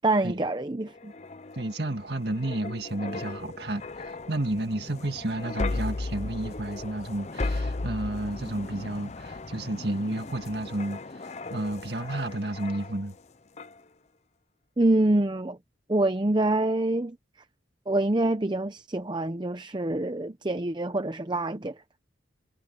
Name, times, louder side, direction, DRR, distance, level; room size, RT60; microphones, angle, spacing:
voice 1, 0.0-1.1 14.8-15.6 15.9-17.2 17.9-21.7, right 2 dB, 25° right, 0.7 m, -26 dB
sound 1, 0.9-13.2 13.6-13.8, left 2 dB, 35° left, 0.6 m, -36 dB
voice 2, 1.5-13.2, right 1 dB, 60° right, 2.0 m, -31 dB
head